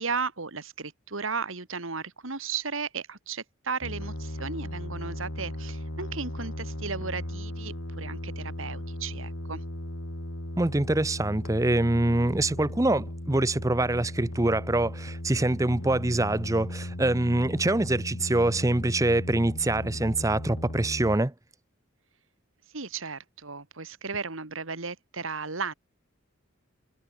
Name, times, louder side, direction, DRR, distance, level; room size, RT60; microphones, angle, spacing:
voice 1, 0.0-9.6 22.7-25.7, right 5 dB, 80° right, 2.2 m, -35 dB
sound 1, 3.8-21.2, left 1 dB, 80° left, 3.9 m, -37 dB
voice 2, 10.6-21.3, right 2 dB, 15° right, 0.6 m, -25 dB
head